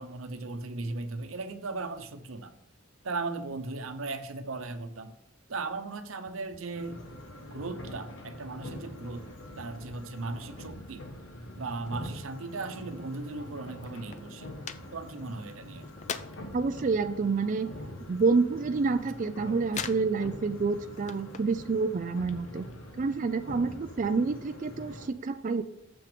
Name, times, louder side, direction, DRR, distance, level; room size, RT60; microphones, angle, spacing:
voice 1, 0.0-2.5 3.0-5.2 5.5-7.0 7.5-9.2 9.6-11.0 11.6-14.5 14.9-15.9, right 3 dB, 85° right, 0.8 m, -37 dB
sound 1, 6.3-6.7 7.0-8.7 9.0-10.0 10.3-12.9 13.2-13.3 13.5-16.6 17.0-18.9 19.1-20.5 20.8-21.6 22.0-22.8, left 6 dB, 35° left, 0.5 m, -43 dB
sound 2, 6.7-25.1, left 1 dB, 70° left, 1.4 m, -44 dB
voice 2, 16.5-17.7 18.1-22.7 23.0-25.6, right 4 dB, 40° right, 0.4 m, -28 dB
7.1 x 6.0 x 5.1 m
head